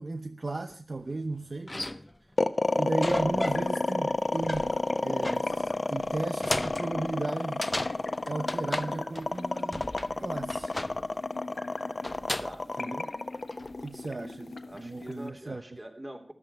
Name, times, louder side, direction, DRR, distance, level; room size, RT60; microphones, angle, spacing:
voice 1, 0.0-1.8 2.8-4.8 5.0-7.7 8.3-9.8 10.2-10.7 12.8-13.1 13.8-15.6, right 2 dB, 55° right, 0.8 m, -35 dB
sound 1, 1.1-1.2 1.7-2.3 3.0-9.4 9.7-11.2 12.0-12.6 13.3-13.8, left 1 dB, 25° left, 0.6 m, -37 dB
sound 2, 2.4-14.6, left 2 dB, 50° left, 1.0 m, -29 dB
sound 3, 2.6-15.3, left 3 dB, 80° left, 1.4 m, -42 dB
voice 2, 12.4-12.7 14.7-16.3, right 1 dB, 25° right, 3.2 m, -43 dB
14.0 x 12.0 x 6.9 m
wide cardioid pair, 65°, 0 cm